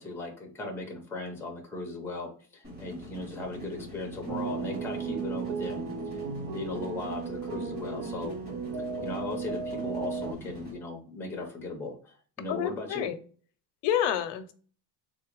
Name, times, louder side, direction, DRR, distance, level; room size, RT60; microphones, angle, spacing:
voice 1, 0.0-5.8 6.5-8.4 9.0-13.1, left 2 dB, 5° left, 1 dB, 0.5 m, -37 dB
sound 1, 2.6-10.7, equal, 25° right, 1.6 m, -45 dB
sound 2, 4.3-10.3, right 5 dB, 80° right, 0.7 m, -35 dB
voice 2, 12.5-13.1 13.8-14.5, left 10 dB, 90° left, 11 dB, 0.6 m, -28 dB
3.6 x 2.2 x 2.9 m, 0.42 s
cardioid pair, 180°, 40 cm